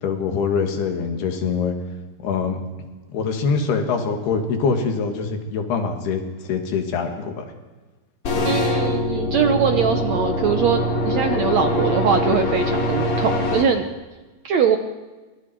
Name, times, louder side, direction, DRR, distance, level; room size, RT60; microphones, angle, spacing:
voice 1, 0.0-1.7 2.2-2.6 3.1-7.5 8.4-8.6, left 5 dB, 90° left, 4 dB, 4.3 m, -24 dB
sound 1, 8.2-13.6, left 1 dB, 40° left, 3.2 m, -23 dB
voice 2, 8.4-13.9 14.4-14.8, right 6 dB, 70° right, 6 dB, 1.7 m, -21 dB
28.0 x 25.0 x 4.7 m, 1.3 s
omnidirectional pair, 4.4 m